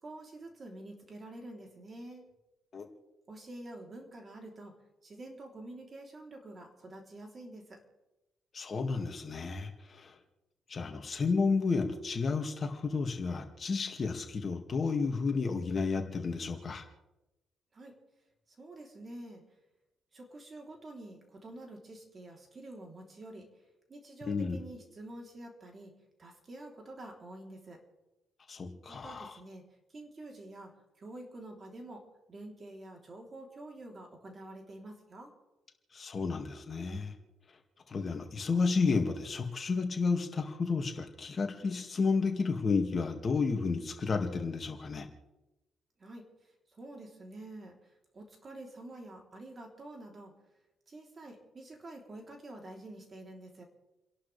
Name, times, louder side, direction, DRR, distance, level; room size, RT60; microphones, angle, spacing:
voice 1, 0.0-2.3 3.3-4.7 5.0-7.8 17.7-18.0 18.5-19.4 20.1-23.5 23.9-25.9 26.2-27.8 28.9-29.6 29.9-35.3 46.0-50.3 50.9-53.6, right 1 dB, 35° right, 1 dB, 3.5 m, -48 dB
voice 2, 8.5-10.1 10.7-16.8 24.3-24.6 28.5-29.3 35.9-37.1 37.9-45.1, left 4 dB, 40° left, 4 dB, 2.2 m, -31 dB
30.0 x 11.5 x 3.4 m, 0.99 s
cardioid pair, 90°, 0 cm